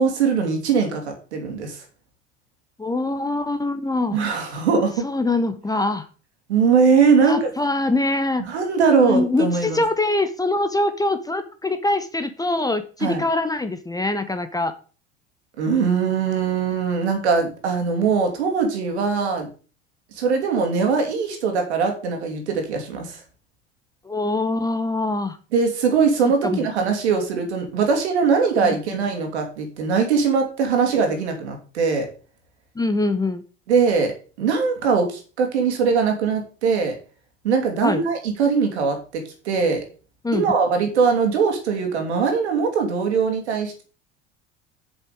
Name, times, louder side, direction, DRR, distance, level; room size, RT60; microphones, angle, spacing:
voice 1, 0.0-1.8 4.1-5.0 6.5-7.5 8.4-9.8 13.0-13.2 15.6-19.5 20.2-23.2 25.5-32.1 33.7-34.1 34.4-37.0 37.4-39.8 40.3-43.8, right 5 dB, 70° right, 4 dB, 2.8 m, -21 dB
voice 2, 2.8-4.2 5.0-6.1 7.2-8.4 9.0-14.7 24.0-25.4 26.2-26.7 28.6-28.8 31.1-31.2 32.7-33.4 37.8-38.0 40.2-40.4, left 2 dB, 10° left, 10 dB, 0.9 m, -23 dB
7.7 x 7.4 x 5.1 m, 0.38 s
figure-of-eight pair, 70°, 35 cm